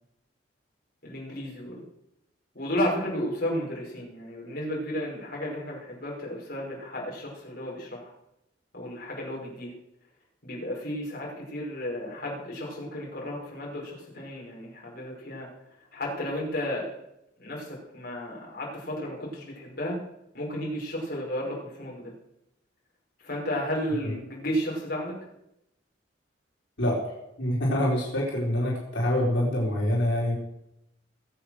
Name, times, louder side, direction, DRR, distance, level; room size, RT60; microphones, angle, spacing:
voice 1, 1.0-1.8 2.5-8.1 8.7-9.8 10.4-15.5 15.9-16.9 17.4-20.0 20.3-22.1 23.2-25.2, equal, 55° left, -3 dB, 5.6 m, -33 dB
voice 2, 27.4-30.3, left 1 dB, 85° left, -4 dB, 4.4 m, -25 dB
20.5 x 8.0 x 6.5 m, 0.84 s
head